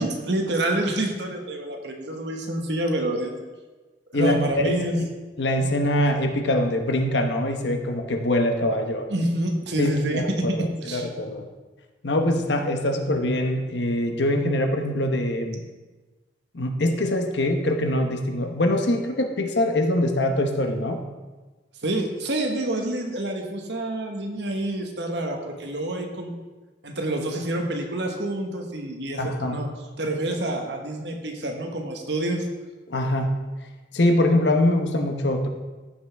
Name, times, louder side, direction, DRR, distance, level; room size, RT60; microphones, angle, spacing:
voice 1, 0.0-3.3 4.1-4.9 9.1-10.4 10.8-11.1 21.8-26.3 26.8-29.7 30.0-32.5, right 1 dB, 75° right, 3 dB, 1.3 m, -27 dB
voice 2, 4.1-5.1 5.4-9.1 9.8-11.5 12.0-15.6 16.5-21.0 29.2-29.6 32.9-33.3 33.9-35.5, left 1 dB, 85° left, 5 dB, 1.0 m, -23 dB
14.0 x 5.8 x 3.5 m, 1.2 s
head